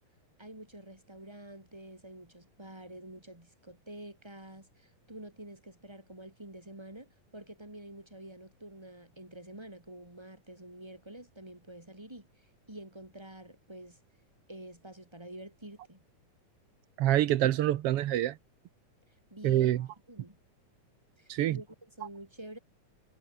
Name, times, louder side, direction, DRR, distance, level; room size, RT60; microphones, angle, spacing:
voice 1, 0.4-14.0 14.5-16.0 19.3-20.4 21.2-22.6, right 1 dB, 10° right, 4.6 m, -48 dB
voice 2, 17.0-18.4 19.4-19.8 21.3-21.6, right 13 dB, 70° right, 1.4 m, -26 dB
omnidirectional pair, 3.6 m